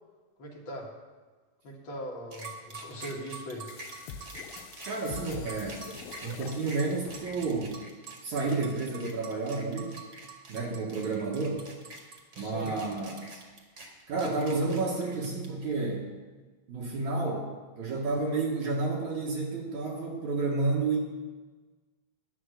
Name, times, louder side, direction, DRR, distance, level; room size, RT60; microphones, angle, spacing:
voice 1, 0.4-0.9 1.6-3.7 12.3-12.7, equal, 40° left, -2 dB, 2.1 m, -40 dB
sound 1, 2.3-15.7, right 3 dB, 40° right, 2.1 m, -45 dB
sound 2, 3.7-7.8, left 7 dB, 90° left, 2.5 m, -46 dB
voice 2, 4.8-5.9 6.2-7.8 8.2-10.0 10.5-11.7 12.4-13.4 14.1-16.1 16.7-17.5 17.8-21.0, right 3 dB, 65° right, -3 dB, 2.7 m, -30 dB
11.0 x 9.0 x 6.4 m, 1.3 s
omnidirectional pair, 3.9 m